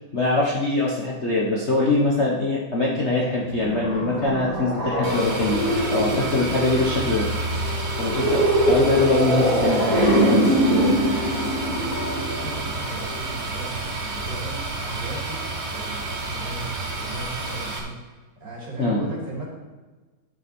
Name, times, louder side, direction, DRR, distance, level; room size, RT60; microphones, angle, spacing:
voice 1, 0.1-7.3 8.0-11.1 18.8-19.0, left 2 dB, 35° left, -4 dB, 1.4 m, -23 dB
sound 1, 3.4-13.2, right 1 dB, 15° right, 2.3 m, -23 dB
sound 2, 5.0-17.8, right 2 dB, 70° right, 3.3 m, -30 dB
voice 2, 12.3-17.9 18.4-19.5, right 2 dB, 50° right, -4 dB, 3.6 m, -37 dB
11.5 x 7.8 x 4.4 m, 1.3 s
omnidirectional pair, 2.4 m